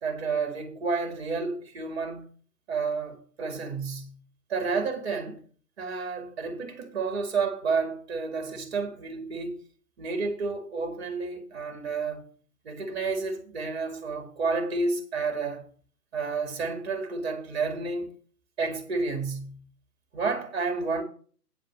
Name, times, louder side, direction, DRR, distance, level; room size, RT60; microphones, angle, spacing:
voice 1, 0.0-2.3 2.7-4.2 4.5-5.4 5.8-9.6 10.0-12.3 12.6-15.6 16.1-18.1 18.6-19.6 20.1-21.0, right 4 dB, 40° right, 2.3 m, -30 dB
9.6 x 5.2 x 6.6 m
figure-of-eight pair, 140°, 47 cm